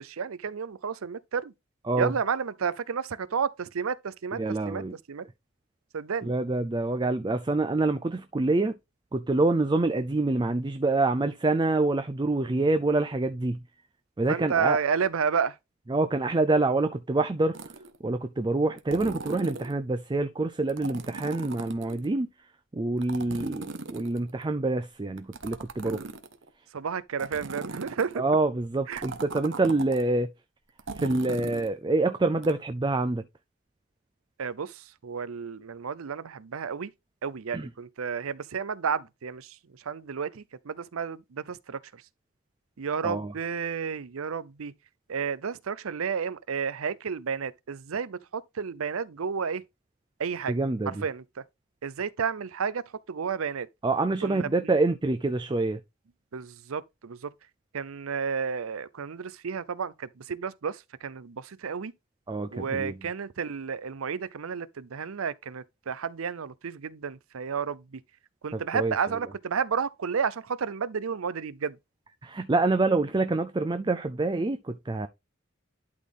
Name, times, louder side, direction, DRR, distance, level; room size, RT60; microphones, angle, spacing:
voice 1, 0.0-1.5 2.0-4.8 5.1-5.2 5.9-6.3 14.3-15.6 25.8-26.1 26.7-28.2 28.9-29.0 34.4-36.9 37.2-39.6 39.9-41.8 42.8-44.7 45.1-49.6 50.2-50.6 50.9-51.2 51.8-52.8 53.1-53.7 54.2-54.8 56.3-57.3 57.7-61.9 62.5-68.0 68.4-71.8, right 6 dB, 85° right, 0.6 m, -31 dB
voice 2, 4.4-4.9 6.2-8.7 9.1-13.6 14.2-14.8 15.9-17.6 18.0-22.3 22.7-26.0 28.2-30.3 30.9-33.2 37.5-37.7 43.0-43.3 50.5-51.0 53.8-55.8 62.3-63.1 68.5-69.2 72.2-75.1, right 2 dB, 20° right, 0.4 m, -26 dB
sound 1, 17.5-18.0 18.8-19.7 20.7-22.1 23.0-24.5 25.2-26.5 27.2-28.2 28.9-30.0 30.8-31.7 32.4-32.5, right 3 dB, 60° right, 1.0 m, -39 dB
11.5 x 4.2 x 3.4 m
head